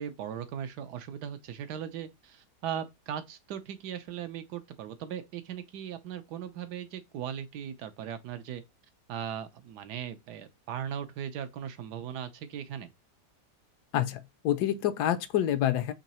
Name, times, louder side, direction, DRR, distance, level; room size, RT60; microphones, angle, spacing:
voice 1, 0.0-8.6 9.1-12.9, right 9 dB, 85° right, 1.3 m, -38 dB
voice 2, 13.9-15.9, left 11 dB, 85° left, 1.2 m, -27 dB
3.8 x 3.0 x 4.2 m
omnidirectional pair, 1.7 m